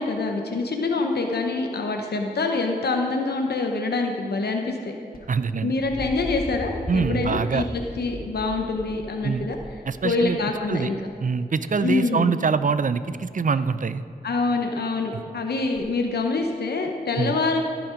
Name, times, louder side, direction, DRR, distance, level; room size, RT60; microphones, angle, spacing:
voice 1, 0.0-5.0 5.6-9.6 10.0-11.0 11.8-12.3 14.2-17.6, left 3 dB, 85° left, 3 dB, 0.8 m, -25 dB
sound 1, 5.1-11.1 12.7-13.2 15.8-15.9, equal, 65° left, 1.8 m, -38 dB
voice 2, 5.3-5.7 6.9-7.6 9.2-9.5 9.9-10.4 10.7-10.9 11.2-14.0 17.2-17.3, right 5 dB, 55° right, 13 dB, 0.5 m, -24 dB
16.0 x 5.9 x 5.2 m, 2.5 s
cardioid pair, 45°, 16 cm